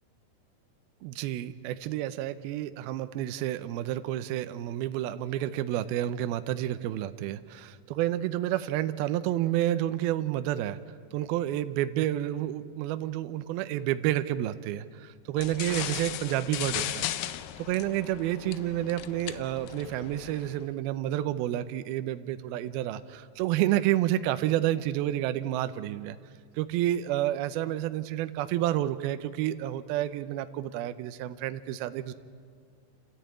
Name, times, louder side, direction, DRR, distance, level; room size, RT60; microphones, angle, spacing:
voice 1, 1.0-10.8 11.1-17.3 17.6-26.2 26.5-32.1, right 13 dB, 80° right, 11 dB, 2.4 m, -30 dB
sound 1, 15.4-20.7, left 13 dB, 85° left, 1.9 m, -37 dB
29.5 x 13.0 x 8.9 m, 2.2 s
omnidirectional pair, 4.8 m